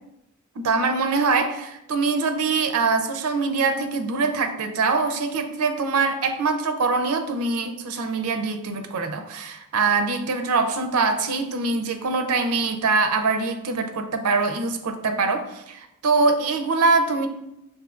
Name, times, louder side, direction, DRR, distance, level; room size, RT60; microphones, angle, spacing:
voice 1, 0.6-17.3, right 4 dB, 75° right, 6 dB, 0.5 m, -23 dB
6.2 x 2.6 x 2.4 m, 0.86 s
head